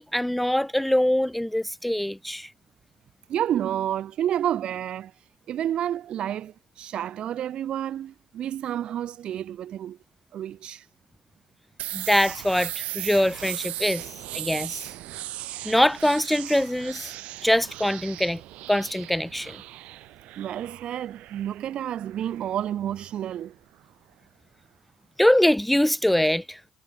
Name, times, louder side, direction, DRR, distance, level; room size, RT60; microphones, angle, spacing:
voice 1, 0.0-2.5 11.9-14.1 14.3-14.9 15.7-17.1 17.4-18.4 18.7-19.6 25.2-26.6, left 1 dB, 5° left, 0.4 m, -23 dB
voice 2, 3.3-5.1 5.5-10.0 10.3-10.8 20.4-23.5, right 10 dB, 45° right, 2.5 m, -30 dB
sound 1, 11.8-23.4, right 16 dB, 65° right, 2.7 m, -38 dB
cardioid pair, 135°, 2 cm